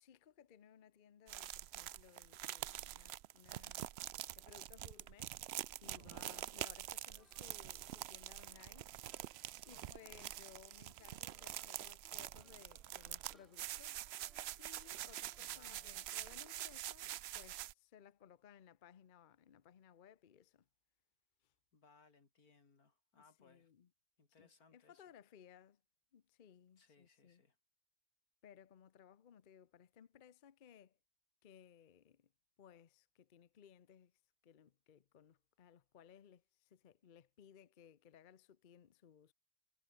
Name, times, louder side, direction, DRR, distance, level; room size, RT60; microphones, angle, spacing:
voice 1, 0.0-3.9 4.4-5.4 5.8-8.9 9.6-14.0 14.6-20.7 21.4-21.5 23.1-23.9 24.4-25.8 26.1-27.4 28.4-31.0 31.4-32.3 32.6-39.3, left 8 dB, 45° left, 0.8 m, -62 dB
sound 1, 1.3-17.7, right 13 dB, 70° right, 0.6 m, -46 dB
voice 2, 6.0-6.5 9.7-10.3 15.4-16.0 21.7-23.7 24.2-25.0 26.8-27.6, left 4 dB, 85° left, 3.4 m, -68 dB
sound 2, 6.8-16.8, equal, ahead, 5.1 m, -73 dB
omnidirectional pair, 1.5 m